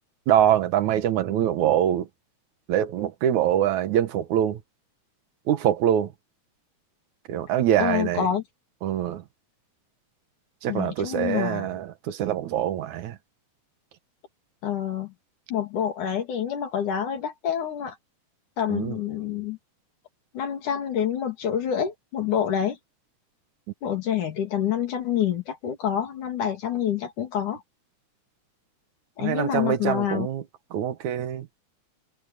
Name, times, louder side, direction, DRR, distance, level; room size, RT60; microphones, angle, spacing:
voice 1, 0.3-2.1 2.7-4.6 5.5-6.1 7.3-8.3 8.8-9.2 10.6-13.2 18.7-19.0 29.2-30.4 30.7-31.5, right 11 dB, 75° right, 2.4 m, -24 dB
voice 2, 7.8-8.4 10.7-11.7 14.6-15.1 15.5-18.0 18.6-19.6 20.3-22.8 23.8-27.6 29.2-30.3, left 9 dB, 75° left, 4.3 m, -27 dB
omnidirectional pair, 3.6 m